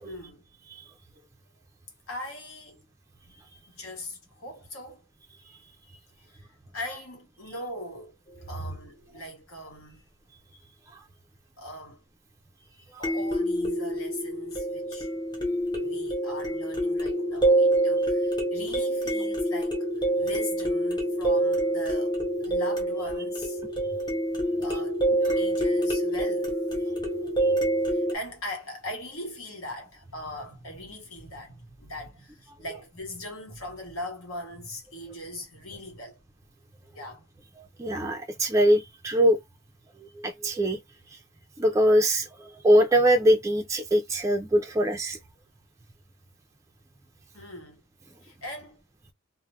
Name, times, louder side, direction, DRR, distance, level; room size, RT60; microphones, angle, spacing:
voice 1, 0.0-0.4 2.1-2.8 3.7-5.1 6.2-10.0 11.6-12.0 13.0-15.1 15.8-19.9 20.2-23.6 24.6-25.0 25.4-26.6 27.8-36.2 36.9-37.4 47.3-47.8 48.2-48.8, left 1 dB, 75° left, 1.0 m, -40 dB
sound 1, 8.3-8.4 13.0-28.2, right 1 dB, 20° left, 0.7 m, -26 dB
voice 2, 37.8-39.4 40.2-40.8 41.6-45.2, equal, 15° right, 0.3 m, -22 dB
2.3 x 2.0 x 3.1 m
head